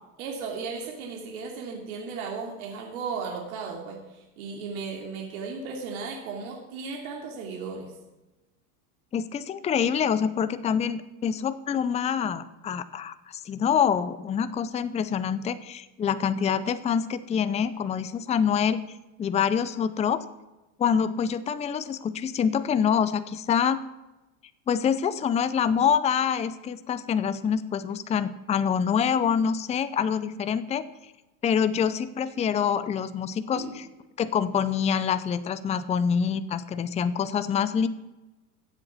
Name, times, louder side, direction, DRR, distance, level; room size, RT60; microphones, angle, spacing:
voice 1, 0.2-7.9 33.5-33.8, right 5 dB, 85° right, 0 dB, 3.1 m, -35 dB
voice 2, 9.1-18.8 19.2-20.2 20.8-23.8 24.7-30.9 31.4-33.8 34.2-37.9, left 7 dB, 15° left, 13 dB, 0.6 m, -26 dB
15.0 x 8.0 x 7.3 m, 1.0 s
supercardioid pair, 130°, 42 cm